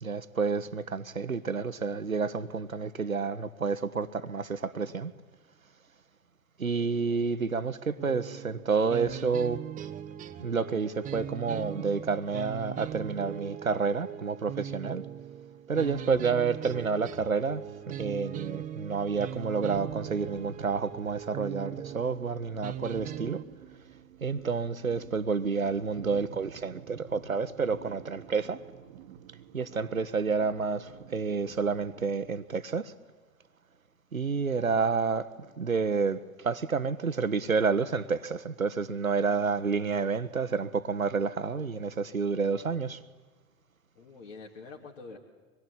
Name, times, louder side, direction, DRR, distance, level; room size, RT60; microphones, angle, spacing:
voice 1, 0.0-5.1 6.6-9.6 10.4-15.0 15.7-23.4 24.2-28.6 29.5-32.9 34.1-35.3 35.6-43.0, right 5 dB, 85° right, 1.1 m, -29 dB
voice 2, 6.9-7.4 15.7-16.1 43.9-45.2, left 4 dB, 65° left, 3.3 m, -48 dB
sound 1, 8.0-23.4, right 10 dB, 20° right, 0.9 m, -40 dB
sound 2, 15.6-32.4, right 9 dB, 40° right, 1.3 m, -51 dB
25.0 x 22.0 x 9.8 m
figure-of-eight pair, 95°, 40 cm